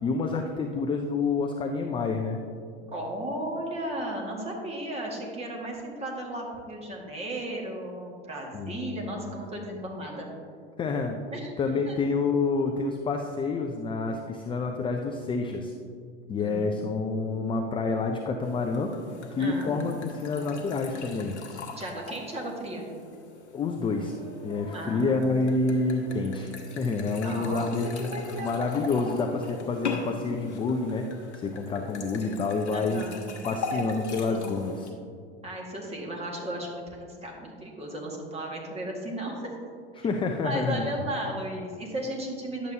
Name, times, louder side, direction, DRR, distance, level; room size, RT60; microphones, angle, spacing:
voice 1, 0.0-2.4 8.5-9.4 10.8-11.2 11.6-15.7 16.3-18.9 19.3-21.4 23.5-24.2 24.4-26.5 26.8-33.0 33.4-34.9 40.0-40.8, left 3 dB, 15° left, 3 dB, 0.4 m, -28 dB
voice 2, 2.9-10.3 11.3-11.5 11.9-12.0 16.4-16.7 19.4-19.7 21.8-22.9 24.7-25.4 27.2-27.7 28.0-29.0 32.7-33.2 33.7-34.5 35.4-39.6 39.9-40.0 40.4-42.7, right 1 dB, 20° right, -1 dB, 1.7 m, -35 dB
Pouring wine, 18.4-34.9, left 3 dB, 85° left, 1.0 m, -40 dB
10.5 x 7.2 x 2.8 m, 2.2 s
hypercardioid pair, 95°, 34 cm